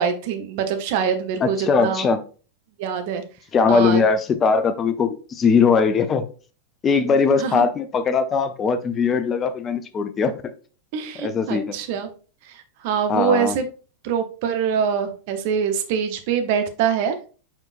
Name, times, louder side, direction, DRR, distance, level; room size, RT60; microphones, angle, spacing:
voice 1, 0.0-2.0 2.8-3.2 3.7-4.0 7.0-7.1 7.4-7.7 10.9-12.1 12.8-13.6 14.0-17.2, right 7 dB, 50° right, 7 dB, 0.7 m, -24 dB
voice 2, 1.4-2.2 3.5-6.3 6.8-10.3 11.2-11.8 13.1-13.6, left 5 dB, 25° left, 10 dB, 0.5 m, -20 dB
4.8 x 4.4 x 2.5 m, 0.37 s
figure-of-eight pair, 90°, 0 cm